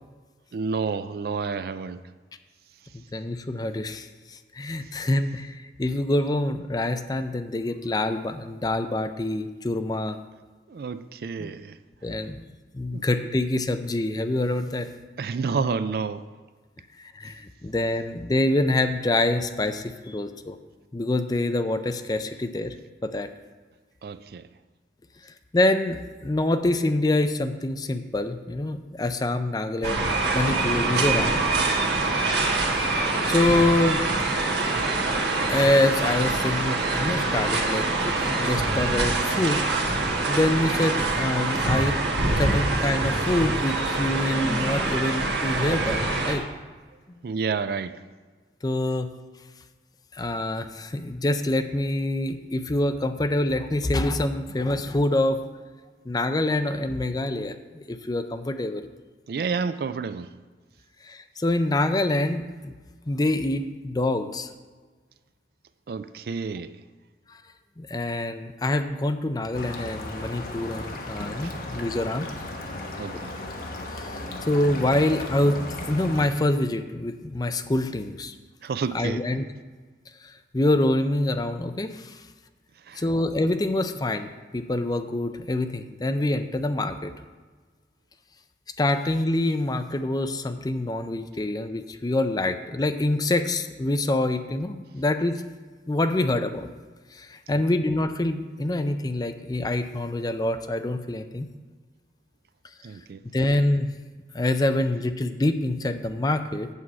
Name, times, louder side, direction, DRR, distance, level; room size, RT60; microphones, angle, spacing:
voice 1, 0.5-2.0 10.7-11.8 12.9-13.0 15.2-16.2 24.0-24.4 47.2-48.0 59.3-60.3 65.9-66.7 73.0-73.3 78.6-79.2 82.9-83.0 97.5-97.6 102.8-103.2, right 5 dB, 60° right, 0.4 m, -29 dB
voice 2, 2.9-10.2 11.4-11.5 12.0-12.4 12.7-14.9 17.0-20.6 20.9-22.8 23.0-23.3 25.5-31.4 33.3-34.0 35.5-39.6 40.3-42.0 42.4-46.4 47.1-47.2 48.6-49.1 50.1-55.4 56.1-58.8 61.0-62.7 63.1-64.5 67.3-67.4 67.8-72.3 73.9-75.6 75.9-78.3 78.9-79.5 80.2-82.2 83.0-84.3 84.5-87.1 88.8-95.4 95.9-96.7 97.1-101.5 103.3-104.0 104.3-106.7, left 1 dB, 20° left, 0.4 m, -26 dB
sound 1, 29.8-46.3, right 2 dB, 75° right, 1.4 m, -25 dB
sound 2, 69.5-76.3, left 1 dB, 55° left, 1.1 m, -35 dB
8.3 x 4.8 x 7.4 m
head